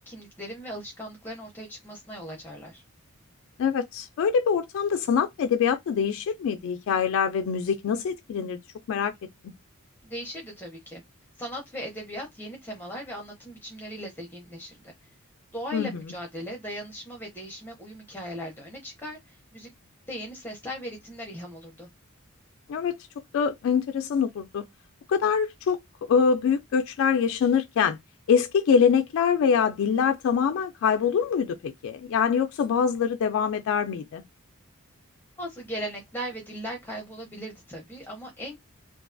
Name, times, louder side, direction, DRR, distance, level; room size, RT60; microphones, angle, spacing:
voice 1, 0.1-2.8 10.0-11.0 11.4-14.8 15.5-19.7 20.1-21.9 35.4-38.6, equal, 10° left, 0.6 m, -38 dB
voice 2, 3.6-8.6 8.9-9.1 15.7-16.0 22.7-23.0 23.3-24.7 25.1-28.0 28.3-34.2, left 6 dB, 70° left, 0.3 m, -24 dB
2.4 x 2.2 x 2.4 m
head